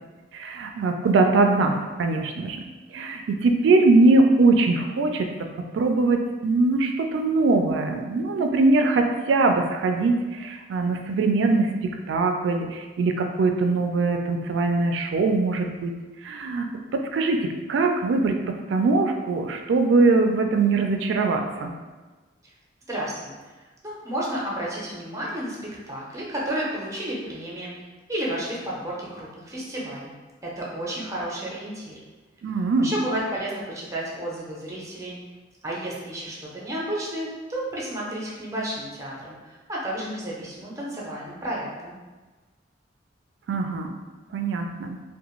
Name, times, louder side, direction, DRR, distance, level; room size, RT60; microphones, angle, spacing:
voice 1, 0.3-2.6 2.9-5.3 5.7-11.7 12.1-15.9 16.2-21.7 32.4-32.9 43.5-43.9 44.3-45.0, right 3 dB, 80° right, 5 dB, 0.3 m, -22 dB
voice 2, 22.9-23.5 23.8-25.6 25.9-27.7 28.1-30.1 30.4-32.0 32.8-35.2 35.6-42.0, right 1 dB, 20° right, -5 dB, 0.6 m, -32 dB
2.4 x 2.1 x 3.0 m, 1.3 s
head